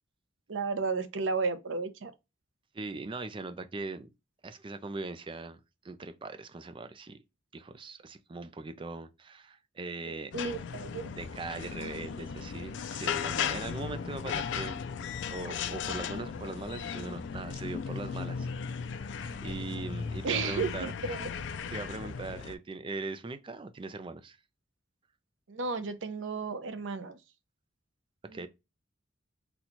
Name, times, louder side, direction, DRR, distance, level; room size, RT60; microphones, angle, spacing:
voice 1, 0.5-2.1 10.1-11.0 20.2-21.3 25.5-27.2 28.3-28.5, right 4 dB, 90° right, 0.6 m, -33 dB
voice 2, 2.7-4.1 4.4-7.2 7.5-10.3 11.1-14.8 15.3-18.5 19.4-20.9 21.7-24.4 28.3-28.5, right 3 dB, 25° right, 0.4 m, -40 dB
sound 1, 10.3-22.5, left 6 dB, 65° left, 0.4 m, -36 dB
4.0 x 2.3 x 2.9 m
head